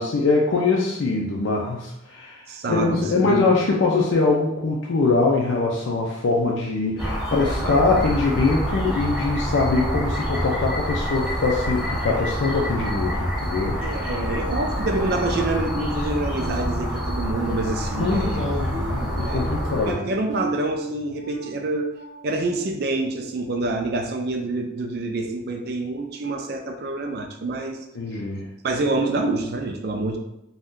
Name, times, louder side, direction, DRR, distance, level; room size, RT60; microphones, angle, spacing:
voice 1, 0.0-2.4 2.7-13.8 18.0-20.1 28.0-28.5, left 3 dB, 80° left, -2 dB, 0.4 m, -23 dB
voice 2, 2.5-3.4 7.6-8.1 13.8-18.4 18.7-21.9 22.2-27.8 28.6-30.2, right 2 dB, 55° right, 4 dB, 0.4 m, -27 dB
sound 1, 7.0-19.9, equal, 5° right, 0.7 m, -27 dB
sound 2, 18.7-24.4 24.8-25.1 25.6-25.8, right 2 dB, 75° right, 0.7 m, -38 dB
2.6 x 2.2 x 3.5 m, 0.85 s
head